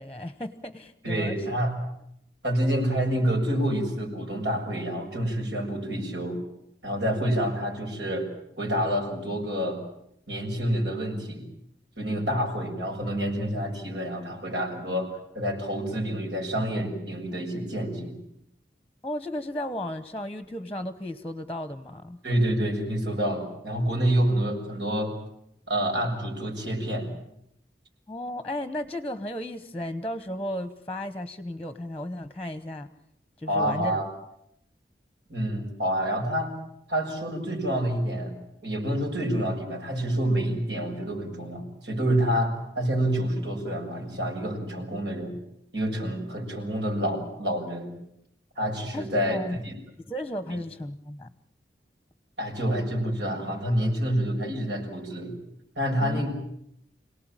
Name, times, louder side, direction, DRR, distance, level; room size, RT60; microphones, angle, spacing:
voice 1, 0.0-1.4 19.0-22.2 28.1-32.9 33.4-34.0 48.9-49.6 50.0-51.3 56.0-56.2, left 1 dB, 10° left, 11 dB, 1.0 m, -34 dB
voice 2, 1.0-1.7 2.4-6.4 6.8-8.3 8.6-9.8 10.3-11.5 12.0-15.1 15.4-18.1 22.2-25.1 25.7-27.1 33.5-34.1 35.3-36.5 36.9-38.4 38.6-45.4 45.7-47.9 48.6-49.7 52.4-55.4 55.8-56.3, equal, 80° right, 2 dB, 6.9 m, -28 dB
27.5 x 18.0 x 9.0 m, 0.77 s
head